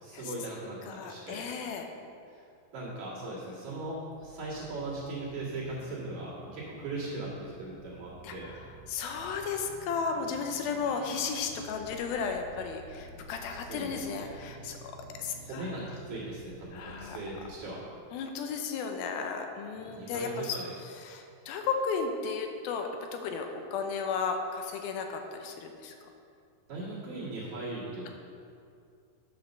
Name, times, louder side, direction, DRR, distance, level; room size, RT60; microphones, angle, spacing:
voice 1, 0.0-1.4 2.3-2.4 2.7-8.5 13.7-14.3 15.4-17.8 19.9-20.7 26.7-28.1, right 2 dB, 55° right, -8 dB, 3.3 m, -39 dB
voice 2, 0.8-1.9 8.2-14.8 15.2-15.9 16.7-17.2 18.1-20.6 20.9-25.9 28.1-28.2, left 5 dB, 85° left, 4 dB, 2.6 m, -34 dB
sound 1, 3.8-17.5, right 2 dB, 70° right, 3.0 m, -51 dB
8.7 x 5.2 x 6.5 m, 2.4 s
omnidirectional pair, 4.2 m